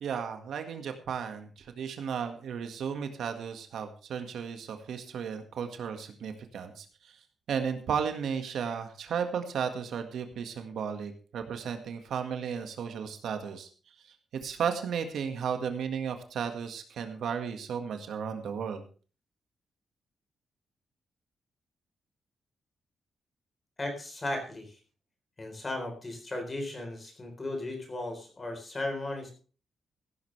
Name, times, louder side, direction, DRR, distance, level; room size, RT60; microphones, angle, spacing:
voice 1, 0.0-7.2 7.5-13.7 14.4-18.8, right 7 dB, 70° right, 7 dB, 1.7 m, -34 dB
voice 2, 23.8-24.8 25.4-29.3, left 2 dB, 20° left, 4 dB, 3.9 m, -36 dB
15.5 x 12.0 x 3.3 m, 0.38 s
wide cardioid pair, 180°, 0 cm